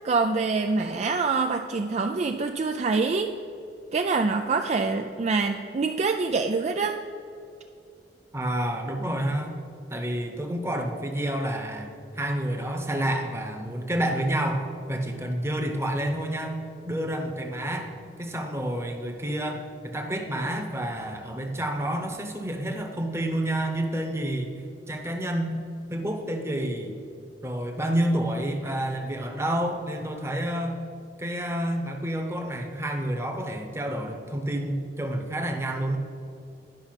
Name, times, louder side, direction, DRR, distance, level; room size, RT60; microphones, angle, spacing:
voice 1, 0.0-3.3 3.9-7.0, right 4 dB, 40° right, 5 dB, 0.4 m, -25 dB
voice 2, 8.3-9.6 9.9-16.6 16.9-17.9 18.2-25.6 25.9-26.9 27.4-30.8 31.2-36.0, right 1 dB, 15° right, 3 dB, 0.9 m, -29 dB
10.5 x 5.6 x 5.8 m, 2.5 s
head